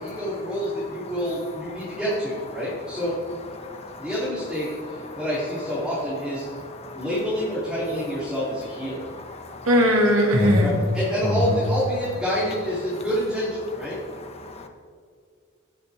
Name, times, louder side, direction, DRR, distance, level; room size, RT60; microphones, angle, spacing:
voice 1, 0.0-3.1 4.0-6.5 6.9-9.1 10.6-14.0, equal, 5° right, -10 dB, 2.8 m, -27 dB
voice 2, 3.6-4.1 4.9-5.2 6.4-7.1 8.9-9.7 10.3-10.8 11.2-11.6 13.9-14.7, left 2 dB, 30° left, 4 dB, 1.1 m, -29 dB
voice 3, 9.7-10.7, equal, 85° right, 1 dB, 2.0 m, -19 dB
18.0 x 7.6 x 3.4 m, 2.1 s
head